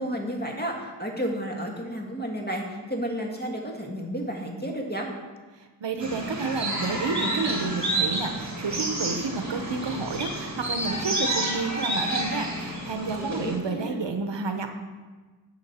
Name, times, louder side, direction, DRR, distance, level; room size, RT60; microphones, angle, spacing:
voice 1, 0.0-5.1 13.0-14.1, equal, 20° left, 0 dB, 1.5 m, -32 dB
voice 2, 5.8-14.8, right 4 dB, 75° right, 6 dB, 0.7 m, -30 dB
sound 1, 6.0-13.6, right 1 dB, 40° right, 1.7 m, -30 dB
10.5 x 5.2 x 4.2 m, 1.3 s
wide cardioid pair, 45°, 43 cm